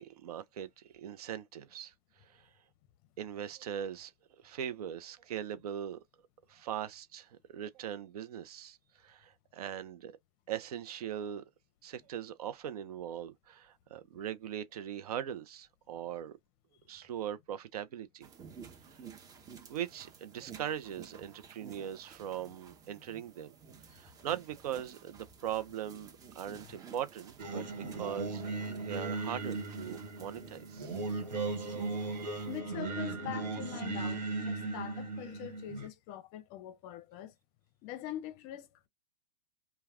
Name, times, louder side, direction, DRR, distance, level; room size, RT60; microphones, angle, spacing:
voice 1, 0.0-1.9 2.2-2.5 3.2-4.1 4.4-6.0 6.5-10.1 10.5-11.4 11.8-16.4 16.9-18.3 19.7-23.6 23.9-28.5 28.8-30.9, right 10 dB, 65° right, 0.6 m, -40 dB
sound 1, 18.2-32.6, right 7 dB, 15° right, 0.6 m, -54 dB
Singing, 27.4-35.9, right 3 dB, 85° right, 1.2 m, -37 dB
voice 2, 32.3-37.3 37.8-38.9, left 12 dB, 40° left, 0.6 m, -44 dB
2.3 x 2.2 x 3.3 m
hypercardioid pair, 120°, 21 cm